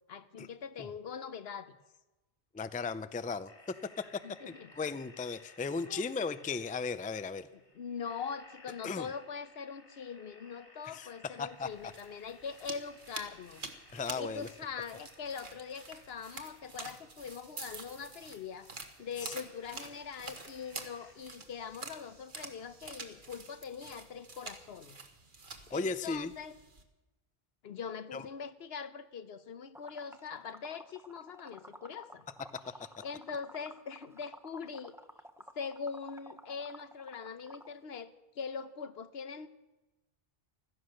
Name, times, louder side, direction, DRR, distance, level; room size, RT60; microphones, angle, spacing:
voice 1, 0.1-1.7 4.2-4.7 5.8-6.1 7.5-18.7 19.0-25.0 25.5-26.5 27.6-32.2 33.0-34.9 35.6-39.5, left 6 dB, 75° left, 12 dB, 1.1 m, -42 dB
voice 2, 2.5-4.2 4.8-7.5 8.8-9.1 10.9-11.1 11.4-11.7 13.9-14.5 19.2-19.3 25.7-26.3 28.1-28.2, left 4 dB, 15° left, 13 dB, 0.3 m, -36 dB
sound 1, 3.5-21.1, left 2 dB, 60° left, 3.1 m, -60 dB
sound 2, 11.6-26.8, right 3 dB, 55° right, 1.5 m, -48 dB
Liquid, 29.7-37.7, equal, 5° right, 0.7 m, -52 dB
15.5 x 13.0 x 6.5 m, 1.1 s
omnidirectional pair, 1.0 m